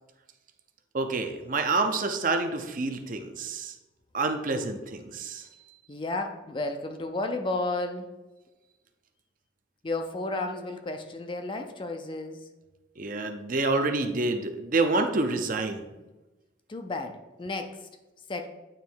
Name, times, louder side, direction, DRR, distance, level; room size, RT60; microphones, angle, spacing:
voice 1, 0.9-3.7 4.1-5.4 13.0-15.8, right 3 dB, 40° right, 6 dB, 0.6 m, -28 dB
voice 2, 5.9-8.1 9.8-12.4 16.7-17.9 18.3-18.5, left 2 dB, 25° left, 5 dB, 0.4 m, -32 dB
8.9 x 3.1 x 4.5 m, 1.1 s
head